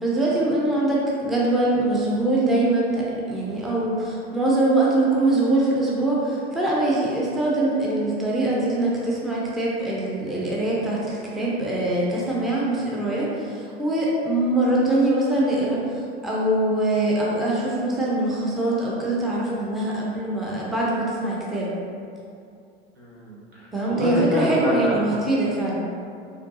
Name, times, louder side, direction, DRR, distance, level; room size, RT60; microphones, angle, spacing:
voice 1, 0.0-21.7 23.7-25.8, right 2 dB, ahead, -6 dB, 0.4 m, -23 dB
voice 2, 23.0-25.0, equal, 75° right, -7 dB, 1.1 m, -27 dB
4.3 x 2.7 x 2.7 m, 2.5 s
figure-of-eight pair, 80°, 32 cm